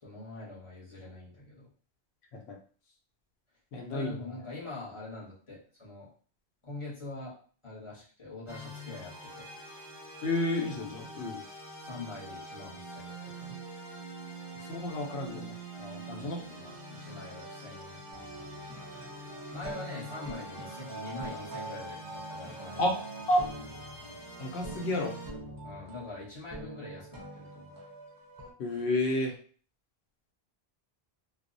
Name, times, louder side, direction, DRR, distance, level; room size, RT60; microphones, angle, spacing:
voice 1, 0.0-1.7 3.9-6.1 6.6-7.3 7.6-9.5 11.8-13.6 15.8-18.2 19.5-22.9 25.6-27.8, left 2 dB, 30° left, -6 dB, 0.8 m, -44 dB
voice 2, 3.7-4.4 10.2-11.4 14.6-15.5 16.1-16.4 22.8-22.9 23.3-23.4 24.4-25.1 28.6-29.3, left 1 dB, 85° left, 2 dB, 0.9 m, -30 dB
sound 1, 8.5-25.3, right 1 dB, ahead, 0.8 m, -45 dB
sound 2, 18.1-28.5, right 2 dB, 35° right, 0.4 m, -45 dB
2.3 x 2.0 x 2.5 m, 0.43 s
omnidirectional pair, 1.1 m